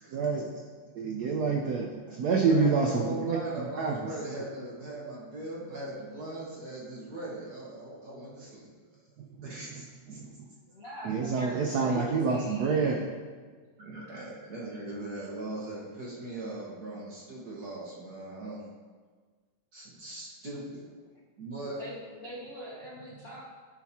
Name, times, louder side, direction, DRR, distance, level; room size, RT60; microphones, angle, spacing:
voice 1, 0.1-0.5 0.9-4.0 11.0-13.0, right 4 dB, 80° right, 0 dB, 0.8 m, -27 dB
voice 2, 2.5-8.7 9.4-10.2 13.8-18.6 19.7-20.8 21.4-21.8, right 2 dB, 50° right, -5 dB, 1.5 m, -39 dB
voice 3, 10.7-13.0 21.6-23.4, right 1 dB, 40° left, -7 dB, 0.9 m, -43 dB
11.5 x 4.0 x 2.8 m, 1.5 s
omnidirectional pair, 2.4 m